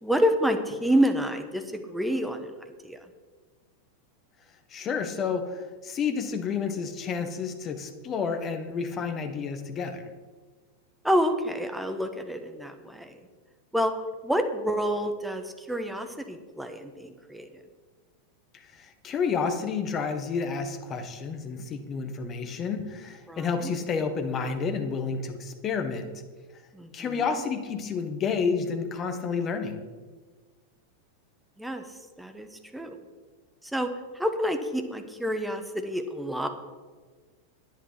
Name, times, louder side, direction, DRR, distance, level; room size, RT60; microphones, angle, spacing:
voice 1, 0.0-2.5 2.8-3.0 11.0-13.1 13.7-13.9 14.2-17.5 23.3-23.7 26.7-27.2 31.6-31.8 32.2-33.0 33.7-36.5, equal, 5° right, 6 dB, 1.3 m, -28 dB
voice 2, 4.7-10.1 18.5-26.1 26.9-29.8, left 5 dB, 30° left, 8 dB, 1.4 m, -30 dB
11.0 x 9.9 x 5.8 m, 1.5 s
figure-of-eight pair, 90°, 0 cm